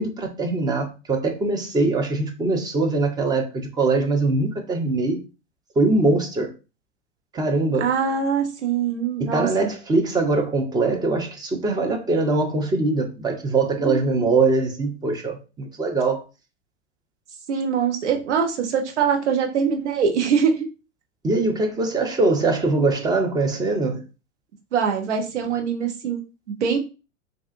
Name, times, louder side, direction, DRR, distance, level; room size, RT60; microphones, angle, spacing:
voice 1, 0.0-5.2 5.8-6.5 7.3-7.9 9.2-16.2 21.2-24.0, right 3 dB, 10° right, 0.5 m, -22 dB
voice 2, 7.8-9.7 13.8-14.0 17.5-20.7 24.7-26.2 26.6-26.8, right 6 dB, 70° right, 0.9 m, -23 dB
3.5 x 2.5 x 2.5 m
figure-of-eight pair, 90°, 36 cm